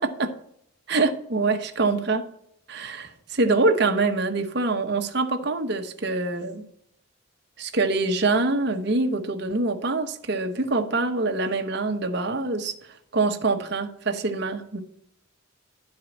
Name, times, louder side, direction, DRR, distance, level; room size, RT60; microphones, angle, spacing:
voice 1, 0.0-0.3 0.9-2.3 2.7-6.7 7.6-12.7 13.1-14.8, right 3 dB, 55° right, 6 dB, 1.0 m, -25 dB
11.5 x 4.7 x 7.8 m, 0.74 s
head